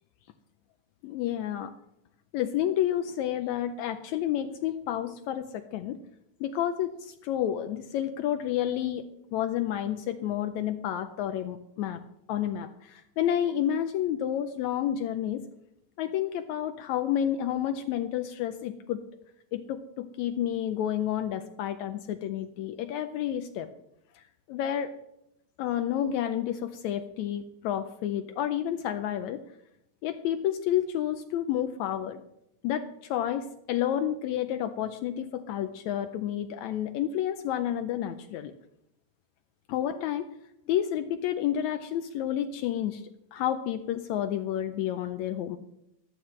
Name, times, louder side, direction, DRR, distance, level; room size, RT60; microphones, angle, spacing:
voice 1, 1.0-1.7 2.3-6.0 6.4-9.1 9.3-12.0 12.3-15.4 16.0-19.0 19.5-23.7 24.1-24.2 24.5-24.9 25.6-29.4 30.0-32.2 32.6-38.5 39.7-40.3 40.7-43.0 43.3-45.6, left 10 dB, 80° left, 9 dB, 1.8 m, -30 dB
14.5 x 11.5 x 3.1 m, 0.79 s
omnidirectional pair, 3.5 m